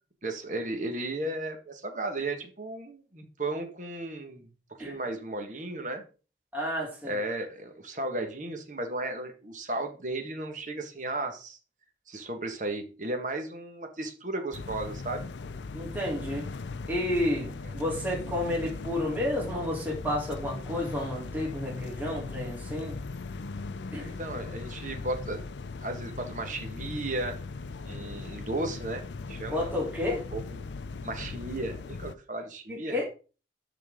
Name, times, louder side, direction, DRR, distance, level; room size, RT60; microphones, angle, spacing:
voice 1, 0.2-4.5 4.8-6.0 7.1-11.6 12.1-15.2 17.6-17.7 24.0-25.4 25.8-27.4 27.8-29.6 30.3-30.4 31.0-33.0, right 2 dB, 45° right, 1.5 m, -35 dB
voice 2, 6.5-7.2 15.7-16.5 16.9-23.0 23.9-24.2 29.5-30.2 32.7-33.0, left 1 dB, 10° right, 2.6 m, -31 dB
sound 1, 14.5-32.1, left 3 dB, 90° left, 0.5 m, -39 dB
12.0 x 4.1 x 3.7 m
head